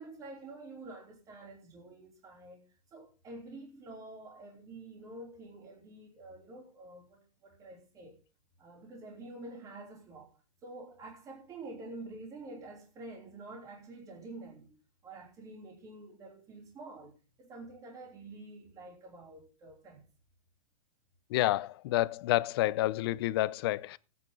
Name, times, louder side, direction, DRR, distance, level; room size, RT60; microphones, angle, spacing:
voice 1, 0.0-8.2 8.6-20.1, right 2 dB, 20° right, 3.5 m, -48 dB
voice 2, 21.3-24.0, left 16 dB, 45° left, 0.7 m, -29 dB
16.5 x 9.6 x 3.9 m
supercardioid pair, 155°, 17 cm